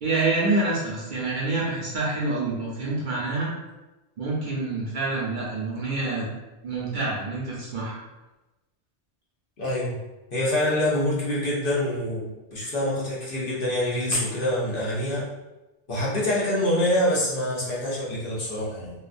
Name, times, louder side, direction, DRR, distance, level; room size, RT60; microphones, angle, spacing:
voice 1, 0.0-3.5 4.2-6.3 6.6-8.0, right 2 dB, 55° right, -5 dB, 0.7 m, -27 dB
voice 2, 9.6-10.0 10.3-15.2 15.9-18.9, left 1 dB, 55° left, -6 dB, 1.0 m, -25 dB
2.8 x 2.3 x 2.5 m, 1.0 s
omnidirectional pair, 1.1 m